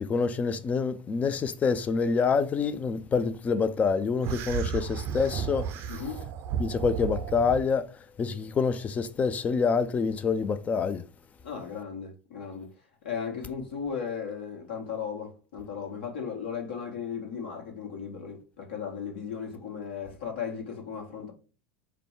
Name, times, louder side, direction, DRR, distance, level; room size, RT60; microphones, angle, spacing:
voice 1, 0.1-5.7 6.6-11.0, left 5 dB, 25° left, 0.5 m, -27 dB
sound 1, 4.2-7.7, right 8 dB, 45° right, 0.6 m, -33 dB
voice 2, 5.9-6.2 11.4-12.7 13.0-21.3, left 6 dB, 65° left, 1.5 m, -36 dB
5.0 x 2.2 x 4.6 m
figure-of-eight pair, 75°, 6 cm